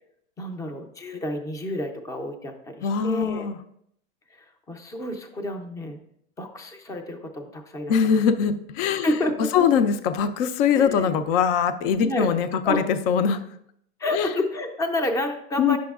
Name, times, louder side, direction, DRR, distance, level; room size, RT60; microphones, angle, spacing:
voice 1, 0.4-3.5 4.3-6.0 6.4-8.2 9.0-9.8 10.7-11.2 12.0-12.3 12.6-12.8 14.0-15.8, left 1 dB, 10° left, 6 dB, 0.5 m, -30 dB
voice 2, 2.8-3.6 7.9-9.1 9.5-13.4 14.1-14.3 15.6-15.8, left 7 dB, 55° left, 11 dB, 0.6 m, -22 dB
8.4 x 6.2 x 2.4 m, 0.71 s
supercardioid pair, 135°, 34 cm